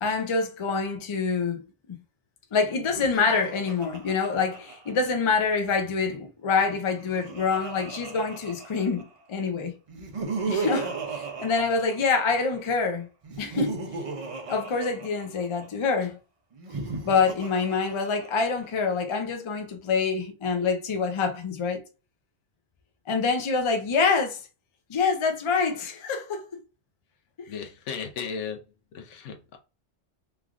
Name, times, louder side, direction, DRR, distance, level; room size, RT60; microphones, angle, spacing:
voice 1, 0.0-2.0 2.5-9.7 10.5-13.1 13.4-13.8 14.5-16.2 17.0-21.8 23.1-24.4 24.9-26.5, left 5 dB, 50° left, 0.3 m, -26 dB
Laughter, 2.8-5.5 6.6-9.2 9.9-12.6 13.2-15.7 16.5-18.6, right 4 dB, 65° right, 0.3 m, -36 dB
voice 2, 27.5-28.6 28.9-29.6, left 6 dB, 80° left, 1.0 m, -35 dB
3.2 x 2.3 x 2.4 m
omnidirectional pair, 1.2 m